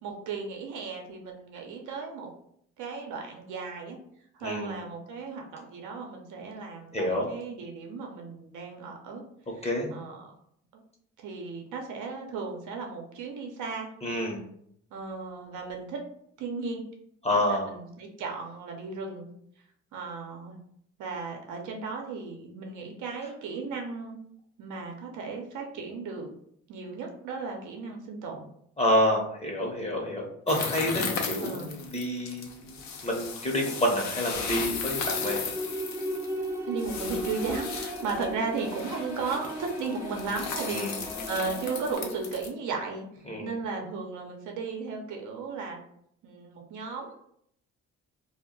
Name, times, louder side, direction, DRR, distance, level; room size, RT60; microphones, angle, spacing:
voice 1, 0.0-2.3 2.8-4.0 4.3-9.2 9.9-10.3 10.7-10.8 11.2-13.9 14.9-16.0 16.4-16.8 17.3-19.3 19.9-20.6 21.0-24.2 24.6-26.3 26.7-28.5 31.4-31.7 36.7-43.1 43.4-45.8 46.2-47.2, right 4 dB, 80° right, 2 dB, 0.6 m, -35 dB
voice 2, 4.4-4.7 6.9-7.3 9.6-9.9 14.0-14.4 17.2-17.7 28.8-35.4 40.7-41.0 43.2-43.6, left 1 dB, 20° left, 0 dB, 0.7 m, -28 dB
sound 1, 30.5-42.5, left 5 dB, 65° left, 0.6 m, -36 dB
sound 2, 34.3-42.0, equal, 10° right, 0.5 m, -36 dB
2.2 x 2.0 x 3.7 m, 0.69 s
cardioid pair, 90°, 30 cm